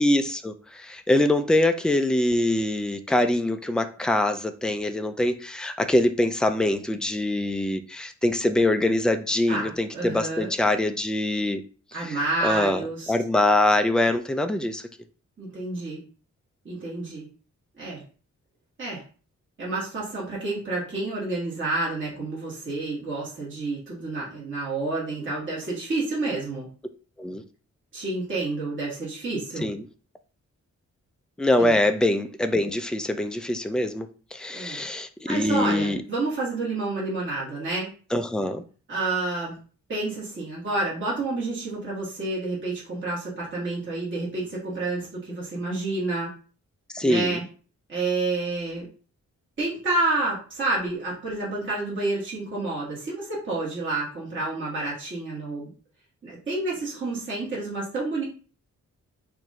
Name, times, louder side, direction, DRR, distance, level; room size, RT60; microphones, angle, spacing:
voice 1, 0.0-11.6 12.1-12.8 13.1-14.8 27.2-27.4 29.6-29.8 31.4-36.0 38.1-38.6 46.9-47.4, left 1 dB, 5° left, 8 dB, 0.3 m, -24 dB
voice 2, 9.5-10.5 11.9-13.1 15.4-16.0 16.6-17.3 17.8-18.0 18.8-19.0 19.6-26.7 27.9-29.7 31.6-31.8 34.5-34.8 35.3-37.9 38.9-39.6 39.9-46.3 47.0-47.4 47.9-48.9 49.6-55.7 56.2-58.2, right 2 dB, 40° right, -7 dB, 2.0 m, -29 dB
4.7 x 2.6 x 4.3 m, 0.38 s
wide cardioid pair, 170°, 30 cm